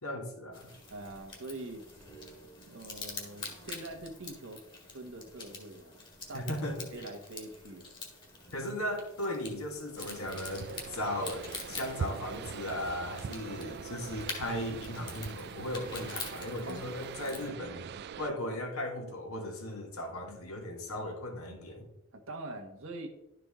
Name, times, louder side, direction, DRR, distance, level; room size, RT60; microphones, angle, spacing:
voice 1, 0.0-0.7 6.3-6.9 8.5-17.9 18.2-21.9, left 1 dB, 75° left, 2 dB, 1.8 m, -37 dB
sound 1, 0.5-17.5, left 3 dB, 25° left, 1.7 m, -46 dB
voice 2, 0.9-1.8 2.6-7.9 8.6-8.7 16.7-16.8 22.1-23.1, right 2 dB, 65° right, 3 dB, 1.4 m, -44 dB
sound 2, 10.0-18.3, right 6 dB, 50° right, 0.3 m, -42 dB
11.5 x 4.8 x 3.7 m, 0.85 s
head